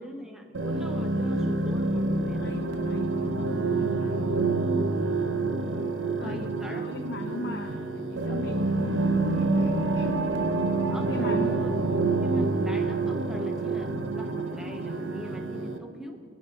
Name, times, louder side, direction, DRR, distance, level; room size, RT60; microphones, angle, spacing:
voice 1, 0.0-2.6 6.2-7.7 8.3-8.7 10.9-11.8 12.2-16.2, equal, 5° right, 3 dB, 1.0 m, -41 dB
sound 1, 0.5-15.8, right 3 dB, 90° right, 0.9 m, -27 dB
voice 2, 2.3-4.3 6.2-8.9 9.3-10.2 11.1-11.9, left 2 dB, 60° left, 3 dB, 0.7 m, -39 dB
24.5 x 9.3 x 3.8 m, 2.3 s
head